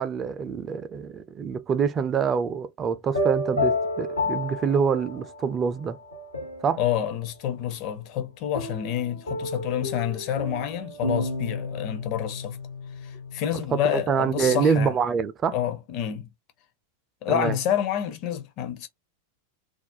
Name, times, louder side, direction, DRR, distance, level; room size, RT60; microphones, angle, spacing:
voice 1, 0.0-6.0 6.6-6.8 13.5-13.6 13.9-15.6 17.3-17.6, right 6 dB, 25° right, 0.3 m, -25 dB
sound 1, 3.1-5.5 6.0-7.0 8.6-14.6, left 2 dB, 80° left, 0.8 m, -31 dB
voice 2, 6.8-12.6 13.0-14.9 15.5-16.3 17.2-18.9, left 10 dB, 40° left, 0.5 m, -28 dB
2.4 x 2.1 x 2.6 m
figure-of-eight pair, 90°, 0 cm